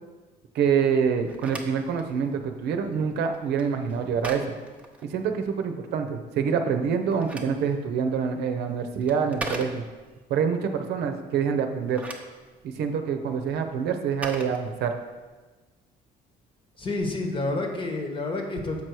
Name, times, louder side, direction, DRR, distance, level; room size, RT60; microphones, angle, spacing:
voice 1, 0.5-4.5 5.0-9.8 10.3-12.0 12.6-14.9, right 6 dB, 75° right, 6 dB, 0.7 m, -26 dB
Telephone, 1.1-5.6 6.8-10.2 11.7-15.3, right 2 dB, 5° right, 0.8 m, -41 dB
voice 2, 16.8-18.8, left 2 dB, 30° left, 3 dB, 1.2 m, -29 dB
7.3 x 4.8 x 4.6 m, 1.3 s
cardioid pair, 110°, 17 cm